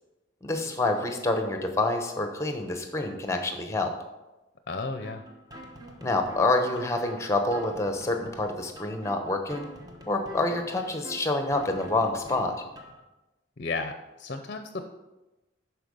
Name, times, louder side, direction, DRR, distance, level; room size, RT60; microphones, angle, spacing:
voice 1, 0.4-3.9 6.0-9.7 10.1-12.6, left 2 dB, 15° left, 5 dB, 0.9 m, -27 dB
voice 2, 4.7-5.2 13.6-14.8, left 3 dB, 50° left, 7 dB, 0.6 m, -33 dB
sound 1, 5.0-13.0, equal, 20° right, 1.0 m, -46 dB
11.0 x 4.6 x 5.3 m, 1.0 s
head